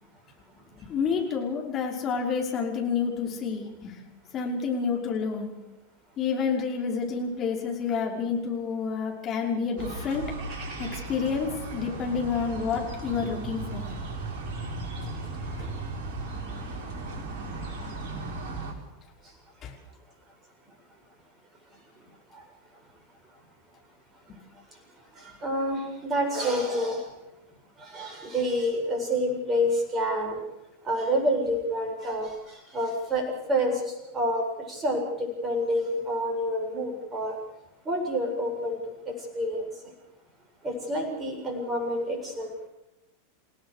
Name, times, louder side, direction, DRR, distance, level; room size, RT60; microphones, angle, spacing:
voice 1, 0.8-4.0 4.3-5.5 6.2-10.2 10.5-13.9 15.0-15.7 19.6-19.7, left 5 dB, 30° left, 0 dB, 5.6 m, -29 dB
sound 1, 9.8-18.7, right 2 dB, 40° right, 5.2 m, -36 dB
voice 2, 25.2-27.1 27.8-30.4 30.8-33.8 34.1-37.4 37.9-39.7 40.6-42.7, equal, 20° right, 2 dB, 7.4 m, -28 dB
29.5 x 17.5 x 6.8 m, 0.97 s
figure-of-eight pair, 90°, 0 cm